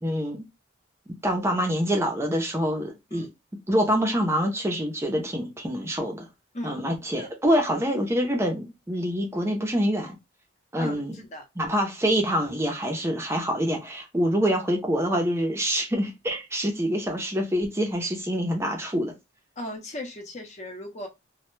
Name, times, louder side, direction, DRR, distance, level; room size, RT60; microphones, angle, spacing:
voice 1, 0.0-0.4 1.2-3.3 3.7-6.3 6.6-10.2 10.7-11.1 11.6-19.1, equal, 15° right, 0.5 m, -26 dB
voice 2, 10.8-11.5 19.6-21.1, left 1 dB, 35° left, 0.6 m, -37 dB
2.1 x 2.0 x 3.0 m
head